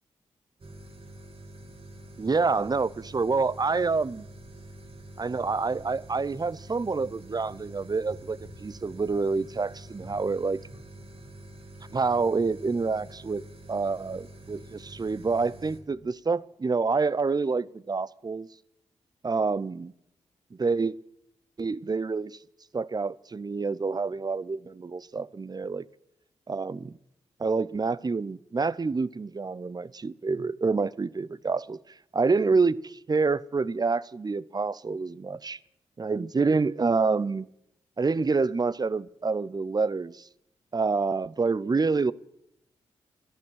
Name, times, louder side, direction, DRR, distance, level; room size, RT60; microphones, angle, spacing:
sound 1, 0.6-15.8, right 1 dB, 50° right, 2.7 m, -46 dB
voice 1, 2.2-4.2 5.2-10.6 11.9-13.4 13.7-18.5 19.2-19.9 20.5-20.9 21.6-22.4 22.7-25.8 26.5-27.0 27.4-31.8 32.1-35.6 36.0-37.5 38.0-40.3 40.7-42.1, right 4 dB, 30° right, 0.6 m, -27 dB
13.0 x 11.0 x 6.4 m
supercardioid pair, 40°, 13 cm